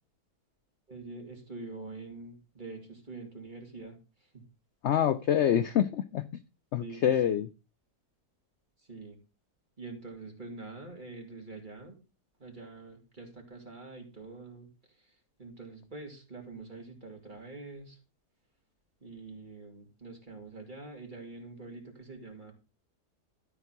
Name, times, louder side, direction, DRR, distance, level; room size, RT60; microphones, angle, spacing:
voice 1, 0.9-4.0 4.3-4.5 6.8-7.4 8.9-9.2 9.8-12.0 12.4-14.7 15.0-15.1 15.4-18.0 19.0-22.5, right 3 dB, 30° right, 2 dB, 3.0 m, -45 dB
voice 2, 4.8-6.3 6.7-7.5, left 10 dB, 65° left, 13 dB, 0.7 m, -26 dB
12.5 x 4.5 x 5.9 m, 0.31 s
omnidirectional pair, 1.7 m